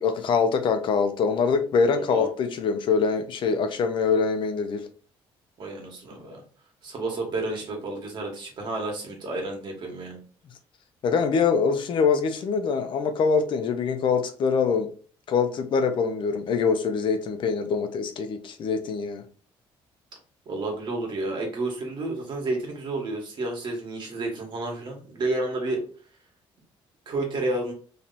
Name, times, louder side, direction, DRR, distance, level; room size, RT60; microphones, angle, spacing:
voice 1, 0.0-4.9 11.0-14.9 15.3-19.2, left 5 dB, 55° left, 7 dB, 0.7 m, -24 dB
voice 2, 1.9-2.3 5.6-6.4 6.8-10.2 20.4-25.8 27.0-27.7, right 2 dB, 50° right, 1 dB, 1.6 m, -30 dB
3.2 x 2.9 x 4.0 m, 0.41 s
cardioid pair, 115°, 10 cm